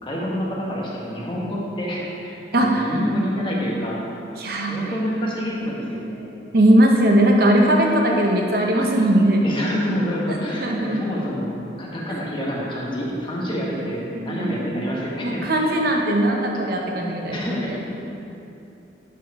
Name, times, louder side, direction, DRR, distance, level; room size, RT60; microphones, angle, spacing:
voice 1, 0.0-4.0 4.6-6.4 9.4-15.7 17.3-17.8, equal, 25° left, -4 dB, 1.3 m, -27 dB
voice 2, 2.5-3.0 4.4-4.9 6.5-9.5 10.6-11.0 14.1-14.9 15.2-17.8, right 1 dB, 55° right, 0 dB, 0.9 m, -19 dB
11.5 x 4.5 x 4.7 m, 2.8 s
head